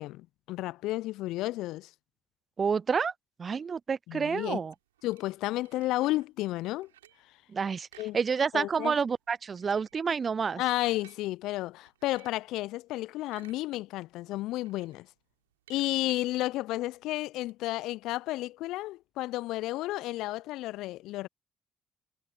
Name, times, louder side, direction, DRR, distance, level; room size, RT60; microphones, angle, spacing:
voice 1, 0.0-1.9 4.1-4.6 5.0-6.9 8.0-8.2 8.5-8.9 10.6-15.1 15.7-21.3, left 17 dB, 70° left, 0.3 m, -32 dB
voice 2, 2.6-3.1 3.4-4.7 7.5-7.9 8.1-10.6, right 6 dB, 40° right, 0.4 m, -29 dB
sound 1, 4.4-6.3 6.7-7.3 7.8-8.7 9.0-9.1 9.4-11.2 11.8-12.5 13.0-13.8 14.2-17.5, right 12 dB, 85° right, 4.0 m, -58 dB
figure-of-eight pair, 45°, 0 cm